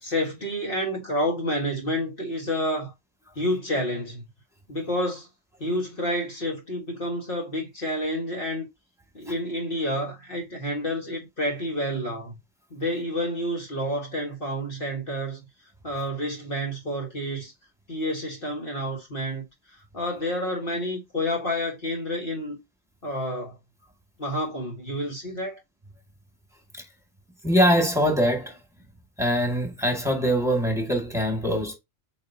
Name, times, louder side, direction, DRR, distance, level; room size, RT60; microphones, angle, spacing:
voice 1, 0.0-2.9 3.4-4.2 4.7-5.3 5.6-8.7 9.1-12.4 12.7-15.4 15.8-17.5 17.9-22.6 23.0-23.6 24.2-25.6, equal, 50° left, 1.8 m, -29 dB
voice 2, 27.4-28.6 29.2-31.7, equal, ahead, 2.2 m, -23 dB
8.4 x 4.2 x 2.8 m
omnidirectional pair, 1.2 m